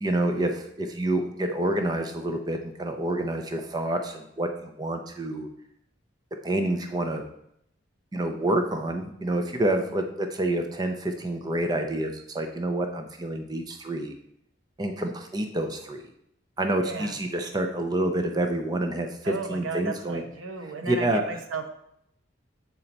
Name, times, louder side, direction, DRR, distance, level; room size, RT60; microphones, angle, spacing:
voice 1, 0.0-5.5 6.4-7.2 8.1-14.1 14.8-16.0 16.6-20.2 20.6-21.4, right 1 dB, 20° right, 5 dB, 0.4 m, -28 dB
voice 2, 16.8-17.2 19.2-21.7, right 4 dB, 90° right, 5 dB, 0.8 m, -34 dB
6.9 x 4.3 x 3.9 m, 0.74 s
head